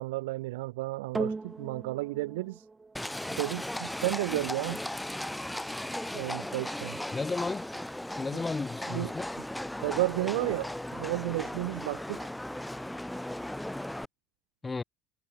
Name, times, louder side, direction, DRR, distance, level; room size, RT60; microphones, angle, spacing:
voice 1, 0.0-2.7 3.4-4.8 6.1-7.0 8.9-9.1 9.8-12.3, right 20 dB, 80° right, 0.4 m, -32 dB
sound 1, 1.1-9.7 10.4-10.5, right 3 dB, 20° right, 2.4 m, -43 dB
Livestock farm animals working animals, 3.0-14.1, left 1 dB, 5° left, 0.3 m, -37 dB
voice 2, 7.1-7.7 8.2-9.4 14.6-14.8, left 4 dB, 25° left, 3.4 m, -33 dB
hypercardioid pair, 65°, 0 cm